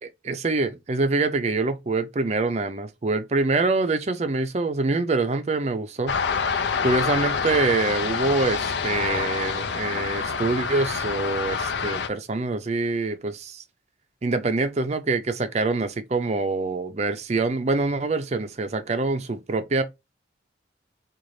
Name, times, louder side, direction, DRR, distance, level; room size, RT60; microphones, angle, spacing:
voice 1, 0.0-6.2 6.8-13.6 14.2-19.8, right 3 dB, 35° right, 0.5 m, -25 dB
sound 1, 6.1-12.1, left 5 dB, 65° left, 0.5 m, -27 dB
3.9 x 2.4 x 3.1 m
head